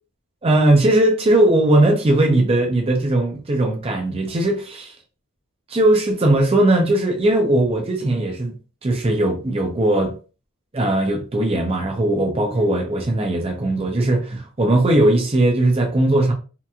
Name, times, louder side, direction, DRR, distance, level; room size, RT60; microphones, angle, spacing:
voice 1, 0.4-4.9 5.7-8.5 8.8-10.1 10.7-16.3, right 1 dB, 25° right, 0.6 m, -18 dB
2.9 x 2.6 x 2.2 m
head